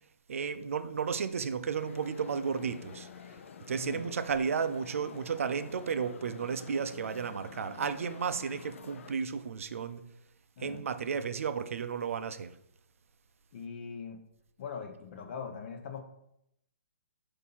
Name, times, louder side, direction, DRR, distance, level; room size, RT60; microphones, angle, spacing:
voice 1, 0.3-3.1 3.7-10.0 10.6-12.5, right 6 dB, 70° right, 0.5 m, -33 dB
sound 1, 1.7-9.1, left 7 dB, 65° left, 0.6 m, -49 dB
voice 2, 13.5-14.2 14.6-16.0, left 6 dB, 45° left, 1.0 m, -41 dB
6.2 x 2.7 x 5.5 m
hypercardioid pair, 145°, 8 cm